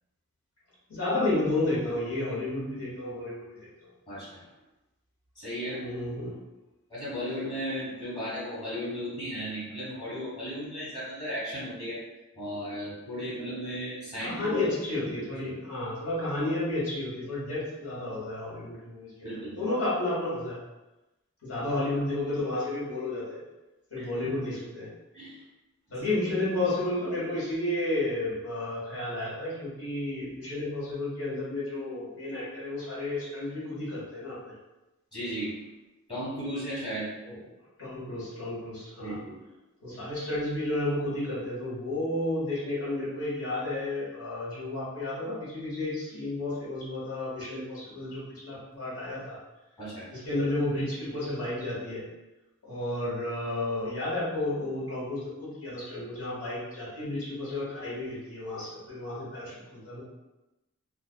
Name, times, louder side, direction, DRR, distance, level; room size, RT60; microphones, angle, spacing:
voice 1, 0.9-3.9 5.7-6.3 14.2-20.6 21.4-23.4 23.9-24.9 25.9-34.5 37.2-37.4 37.8-39.2 39.8-49.4 50.1-52.0 52.6-60.0, left 2 dB, 70° left, -9 dB, 1.4 m, -32 dB
voice 2, 4.1-4.4 5.3-5.8 6.9-12.0 12.3-14.6 19.2-19.6 24.0-24.3 25.1-25.4 35.1-35.5 36.1-37.1 39.0-39.4 49.8-50.1, equal, 20° left, -10 dB, 1.2 m, -35 dB
2.4 x 2.4 x 2.2 m, 1.0 s
head